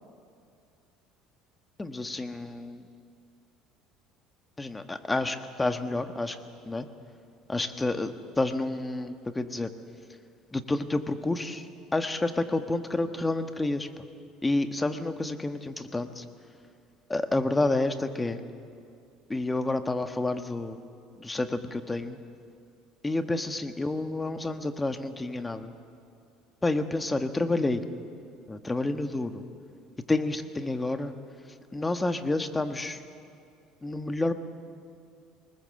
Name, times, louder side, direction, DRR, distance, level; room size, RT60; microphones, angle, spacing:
voice 1, 1.8-2.8 4.6-6.4 6.6-6.9 7.5-9.7 10.5-13.9 14.4-16.2 17.1-18.4 19.3-20.9 21.2-22.2 23.0-25.7 26.6-27.8 28.5-29.4 30.1-31.1 31.7-33.0 33.8-34.3, left 2 dB, 15° left, 9 dB, 1.4 m, -29 dB
23.0 x 20.5 x 7.8 m, 2.4 s
supercardioid pair, 100°, 0 cm